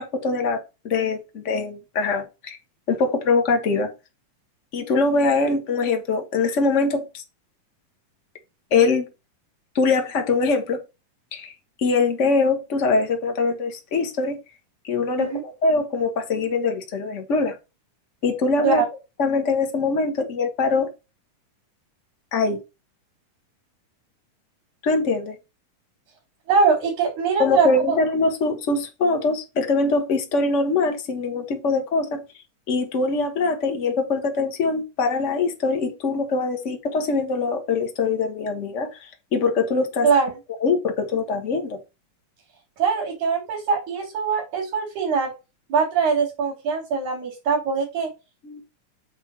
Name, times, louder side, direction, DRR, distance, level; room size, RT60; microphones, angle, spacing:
voice 1, 0.0-2.6 2.9-3.9 4.7-7.2 8.7-9.1 9.7-10.8 11.3-11.5 11.8-14.4 14.8-17.6 18.2-18.8 19.2-20.9 22.3-22.6 24.8-25.3 27.4-32.2 32.7-40.1 40.6-41.8 48.4-48.6, left 3 dB, 80° left, 0.6 m, -23 dB
voice 2, 26.5-28.0 40.0-40.3 42.8-45.3 45.7-48.1, right 5 dB, 65° right, 4.2 m, -22 dB
8.0 x 3.6 x 6.1 m
omnidirectional pair, 3.8 m